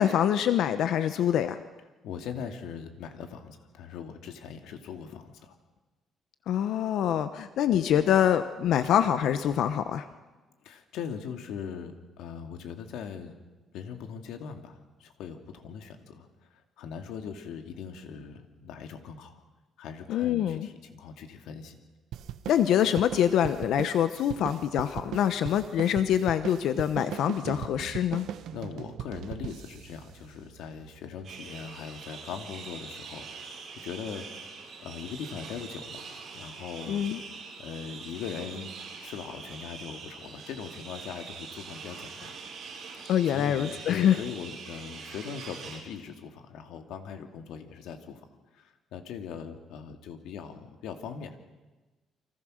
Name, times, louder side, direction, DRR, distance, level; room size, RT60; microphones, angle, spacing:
voice 1, 0.0-1.6 6.5-10.1 20.1-20.7 22.5-28.3 36.9-37.2 43.1-44.2, left 10 dB, 65° left, 11 dB, 1.0 m, -25 dB
voice 2, 2.0-5.5 10.6-13.4 13.7-16.3 16.8-19.4 19.8-21.8 28.5-34.3 34.8-37.2 37.6-38.7 39.0-42.3 43.3-48.3 48.5-51.4, left 7 dB, 80° left, 6 dB, 2.6 m, -40 dB
sound 1, 22.1-30.9, right 10 dB, 70° right, 1.3 m, -40 dB
sound 2, 31.2-45.8, right 5 dB, 45° right, 7.4 m, -43 dB
29.0 x 25.0 x 6.6 m, 1.2 s
cardioid pair, 165°, 0 cm